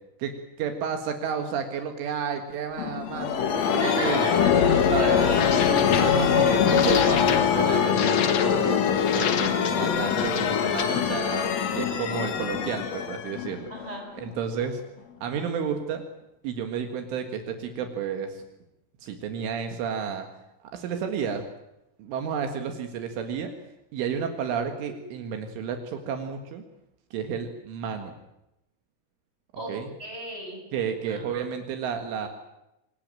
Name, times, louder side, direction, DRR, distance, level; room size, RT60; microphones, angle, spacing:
voice 1, 0.2-4.3 4.9-5.6 6.0-8.8 9.1-13.7 14.1-14.8 15.2-16.0 16.4-18.4 19.0-20.3 20.7-21.4 22.0-23.5 23.9-26.6 27.1-28.2 29.7-29.9 30.7-32.3, right 7 dB, 75° right, 6 dB, 4.2 m, -31 dB
sound 1, 2.8-14.3, left 8 dB, 85° left, 1.5 m, -23 dB
voice 2, 3.8-5.8 13.7-14.1 29.5-29.7 30.0-30.6 31.1-31.2, right 1 dB, 10° right, 0 dB, 8.0 m, -35 dB
26.0 x 19.0 x 9.0 m, 0.88 s
omnidirectional pair, 5.7 m